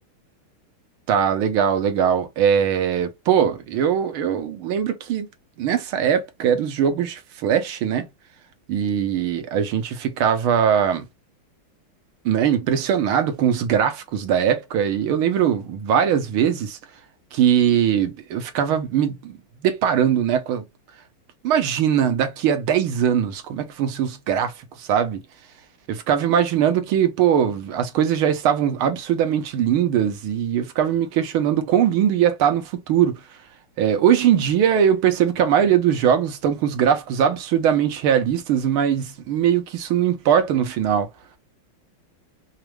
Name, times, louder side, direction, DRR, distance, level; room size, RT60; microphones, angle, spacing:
voice 1, 1.1-5.3 5.6-8.1 8.7-11.1 12.3-16.8 17.3-19.4 19.6-20.7 21.4-24.5 24.8-25.2 25.9-33.2 33.8-41.1, right 9 dB, 90° right, 1.8 m, -21 dB
5.0 x 2.4 x 3.1 m
omnidirectional pair, 2.3 m